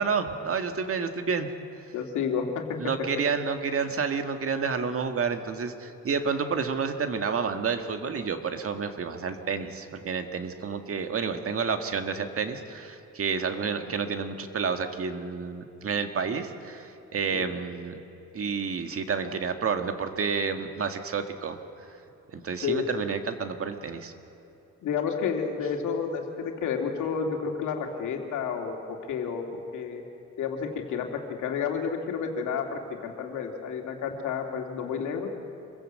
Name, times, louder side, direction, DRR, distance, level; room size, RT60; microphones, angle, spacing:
voice 1, 0.0-1.5 2.8-18.0 18.3-21.6 22.3-24.1, right 5 dB, 50° right, 7 dB, 1.8 m, -30 dB
voice 2, 1.9-2.9 17.3-17.5 22.6-22.9 24.8-30.0 30.4-35.3, left 6 dB, 80° left, 3 dB, 2.7 m, -31 dB
26.0 x 16.0 x 7.8 m, 2.8 s
cardioid pair, 90°, 30 cm